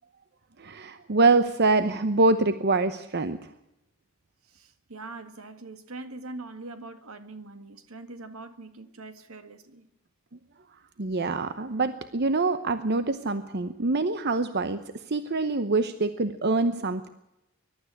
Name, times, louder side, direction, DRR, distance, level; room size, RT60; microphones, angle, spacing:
voice 1, 0.6-3.4 11.0-14.8 15.1-17.1, right 3 dB, 50° right, 0.9 m, -25 dB
voice 2, 4.5-9.9, right 2 dB, 70° right, 1.8 m, -42 dB
21.5 x 12.0 x 9.9 m
head